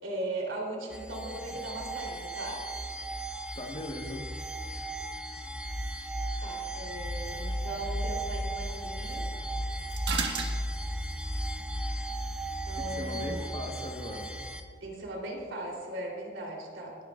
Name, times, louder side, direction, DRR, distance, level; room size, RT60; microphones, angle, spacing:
voice 1, 0.0-2.6 6.4-9.3 12.7-13.5 14.8-17.0, right 1 dB, 90° right, -1 dB, 3.5 m, -38 dB
sound 1, 0.9-14.6, right 1 dB, 5° right, 0.7 m, -35 dB
voice 2, 3.5-4.3 12.8-14.4, left 1 dB, 35° left, 2 dB, 1.3 m, -39 dB
sound 2, 6.8-14.5, right 5 dB, 70° right, 1.7 m, -42 dB
19.0 x 12.5 x 2.5 m, 2.3 s
head